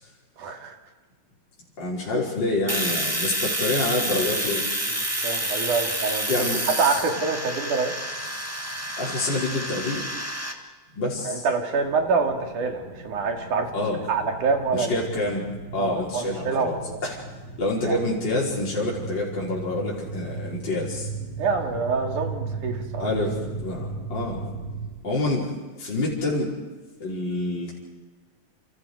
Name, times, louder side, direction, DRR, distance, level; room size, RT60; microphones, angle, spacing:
voice 1, 0.4-0.8 2.1-2.2 4.9-6.4 6.8-7.9 11.2-13.7 14.1-15.0 15.8-17.0 17.8-18.0 21.4-23.1, right 4 dB, 70° right, 3 dB, 4.0 m, -26 dB
voice 2, 1.8-4.6 6.3-6.6 9.0-10.2 11.0-11.5 13.7-14.0 14.7-15.4 15.7-16.8 17.0-17.2 17.6-21.1 23.0-25.5 25.8-26.5 27.0-27.8, left 2 dB, 35° left, -5 dB, 5.3 m, -27 dB
Domestic sounds home sounds, 2.7-10.5, right 1 dB, 5° right, 1.2 m, -28 dB
sound 1, 11.8-24.9, right 4 dB, 40° right, 5.1 m, -36 dB
29.0 x 28.5 x 5.0 m, 1.3 s
omnidirectional pair, 3.7 m